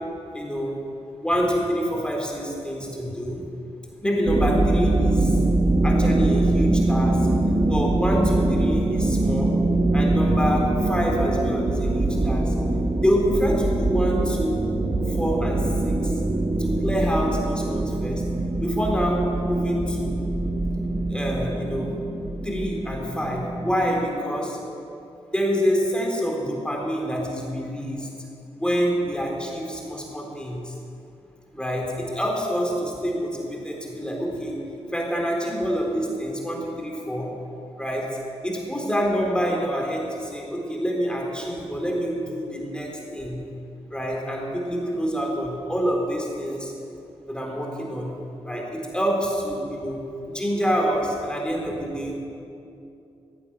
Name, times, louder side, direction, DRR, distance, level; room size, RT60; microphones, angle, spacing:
voice 1, 0.3-0.7 1.2-3.4 4.0-5.4 5.8-7.2 7.7-9.5 9.9-12.5 13.0-14.6 15.2-16.1 16.6-18.2 18.6-20.1 21.1-21.9 22.4-24.6 25.3-28.1 28.6-30.7 31.5-34.5 34.9-37.3 37.8-38.0 38.4-43.4 43.9-46.7 47.3-48.1 48.4-50.0 50.3-52.2, equal, 10° left, -1 dB, 3.9 m, -26 dB
sound 1, 4.3-24.1, right 2 dB, 30° right, 1.3 m, -23 dB
15.0 x 8.6 x 7.2 m, 2.7 s
cardioid pair, 55°, 11 cm